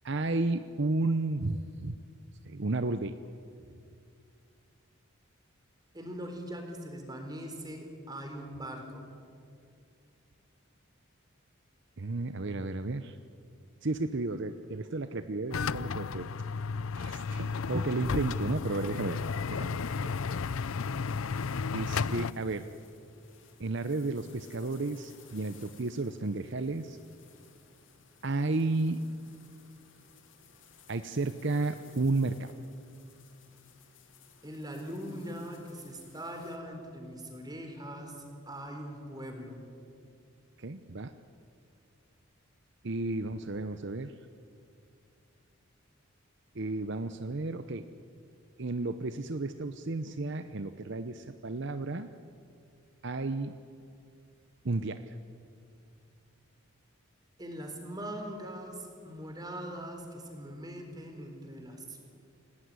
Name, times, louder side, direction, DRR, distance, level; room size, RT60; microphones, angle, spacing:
voice 1, 0.0-2.0 2.4-3.2 12.0-13.2 13.8-16.3 16.9-19.2 19.5-20.1 21.7-22.7 23.6-27.0 28.2-29.0 30.9-32.6 40.6-41.1 42.8-44.2 46.5-47.9 48.6-52.1 53.0-53.6 54.6-55.2, right 2 dB, 60° right, 10 dB, 0.8 m, -32 dB
voice 2, 5.9-9.1 34.4-39.6 57.4-62.0, equal, 20° right, 4 dB, 4.0 m, -41 dB
sound 1, 15.5-22.3, left 5 dB, 85° left, 0.6 m, -33 dB
sound 2, 18.0-36.6, left 6 dB, 65° left, 3.1 m, -58 dB
28.0 x 18.0 x 9.7 m, 2.4 s
head